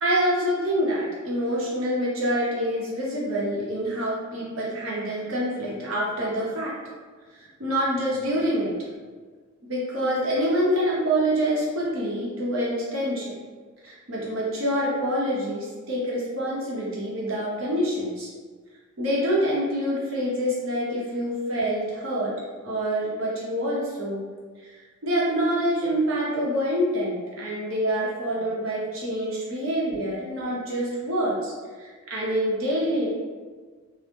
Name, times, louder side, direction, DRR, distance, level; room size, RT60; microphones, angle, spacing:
voice 1, 0.0-6.7 7.3-8.7 9.7-13.4 13.8-18.3 19.0-22.3 22.6-24.2 24.6-24.8 25.0-31.5 31.8-33.1, equal, 70° right, -5 dB, 0.8 m, -26 dB
2.8 x 2.1 x 3.4 m, 1.5 s
head